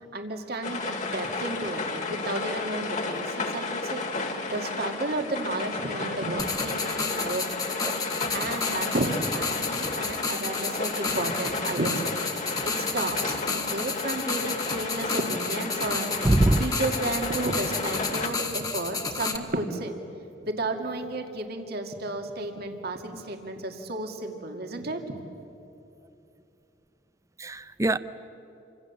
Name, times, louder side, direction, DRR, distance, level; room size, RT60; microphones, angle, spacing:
voice 1, 0.1-16.2 16.6-20.0 20.4-25.1, right 2 dB, 60° right, 4 dB, 2.3 m, -32 dB
sound 1, 0.6-18.3, left 3 dB, 45° left, 2.1 m, -33 dB
sound 2, 6.4-19.4, left 4 dB, 20° left, 1.5 m, -32 dB
voice 2, 16.2-16.7 27.4-28.0, right 1 dB, 20° right, 14 dB, 0.6 m, -22 dB
28.0 x 25.5 x 7.2 m, 2.8 s
head